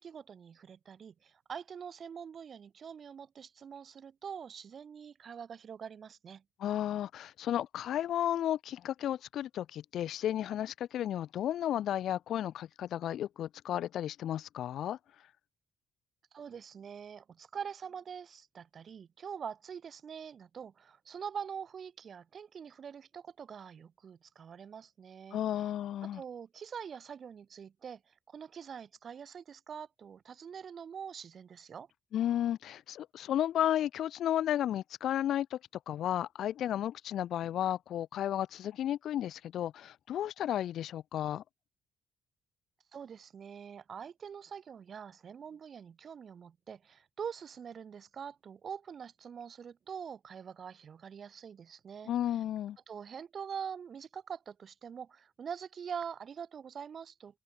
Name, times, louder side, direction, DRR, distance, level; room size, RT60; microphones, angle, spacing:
voice 1, 0.0-6.4 16.3-25.4 26.0-31.9 42.9-52.1 52.9-57.4, right 7 dB, 50° right, 2.9 m, -44 dB
voice 2, 6.6-15.0 25.3-26.2 32.1-35.6 35.9-41.4 52.1-52.8, left 11 dB, 65° left, 0.5 m, -33 dB
open air
hypercardioid pair, 45°, 0 cm